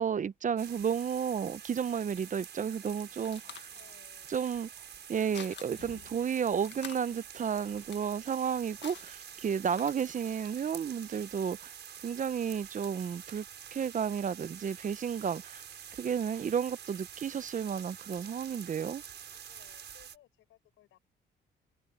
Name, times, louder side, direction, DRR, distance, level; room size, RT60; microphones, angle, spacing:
voice 1, 0.0-3.7 4.3-4.7 5.1-11.7 12.0-13.4 13.7-15.6 16.0-19.0, right 7 dB, 40° right, 0.7 m, -32 dB
sound 1, 0.6-20.2, right 8 dB, 60° right, 6.2 m, -48 dB
sound 2, 2.7-10.4, left 9 dB, 65° left, 1.7 m, -51 dB
voice 2, 3.7-4.4 19.3-21.0, left 13 dB, 85° left, 7.6 m, -62 dB
cardioid pair, 90°, 20 cm